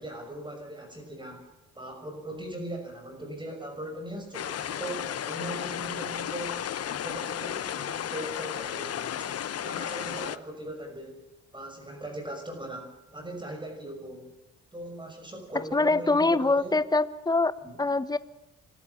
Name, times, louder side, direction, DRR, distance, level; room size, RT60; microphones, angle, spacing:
voice 1, 0.0-1.4 1.7-6.6 6.9-9.4 9.6-11.2 11.5-14.3 14.7-16.8 17.6-17.8, right 1 dB, 15° right, 3 dB, 6.2 m, -39 dB
sound 1, 4.3-10.4, left 10 dB, 55° left, 1.0 m, -34 dB
voice 2, 15.7-17.5 17.8-18.2, left 3 dB, 15° left, 14 dB, 1.1 m, -24 dB
25.5 x 14.0 x 9.6 m, 0.94 s
cardioid pair, 90°, 30 cm